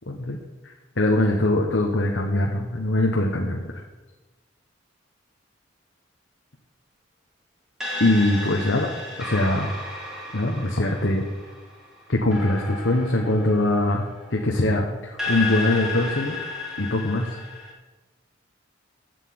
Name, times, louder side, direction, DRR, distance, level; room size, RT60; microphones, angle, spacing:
voice 1, 0.1-0.4 1.0-3.6 8.0-8.9 9.2-9.7 10.3-11.2 12.1-14.0 14.3-16.3 16.8-17.3, left 1 dB, 65° left, 0 dB, 1.2 m, -22 dB
sound 1, 7.8-14.6 15.2-17.7, left 3 dB, 5° right, 3.5 m, -33 dB
8.3 x 8.0 x 8.7 m, 1.2 s
head